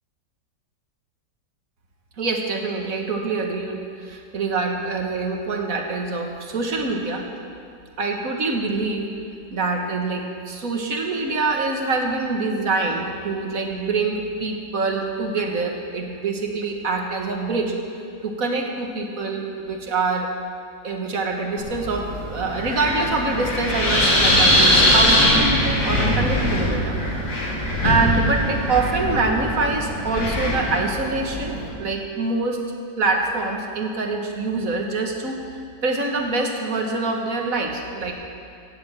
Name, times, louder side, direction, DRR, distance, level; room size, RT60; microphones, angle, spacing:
voice 1, 2.2-7.2 8.0-9.1 9.5-17.7 18.2-20.3 20.8-27.0 27.8-32.6 33.0-35.4 35.8-38.1, right 3 dB, 55° right, 2 dB, 1.8 m, -25 dB
Wind, 21.6-31.7, left 1 dB, 55° left, 2.8 m, -21 dB
17.0 x 7.9 x 7.6 m, 2.5 s
omnidirectional pair, 1.9 m